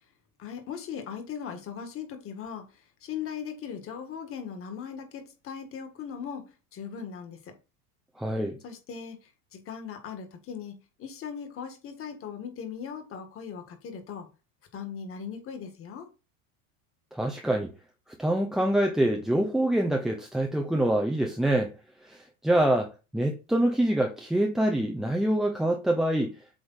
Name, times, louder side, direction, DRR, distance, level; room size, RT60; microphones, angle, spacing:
voice 1, 0.4-7.5 8.6-14.3 14.7-16.1, left 7 dB, 30° left, 1.7 m, -39 dB
voice 2, 8.2-8.6 17.1-17.7 18.2-21.7 22.0-26.4, right 1 dB, ahead, 0.3 m, -25 dB
7.9 x 3.5 x 4.0 m
supercardioid pair, 135°, 42 cm